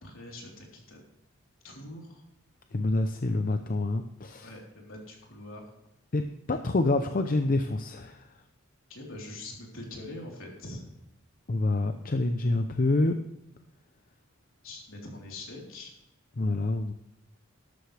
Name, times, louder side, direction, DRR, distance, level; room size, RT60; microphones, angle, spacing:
voice 1, 0.0-1.0 1.6-2.2 4.4-5.6 8.9-10.9 14.6-15.9, left 1 dB, 65° left, -1 dB, 3.9 m, -43 dB
voice 2, 2.7-4.5 6.1-8.2 11.5-13.1 16.4-16.9, left 2 dB, 40° left, 7 dB, 0.6 m, -27 dB
13.0 x 12.5 x 3.4 m, 0.87 s
head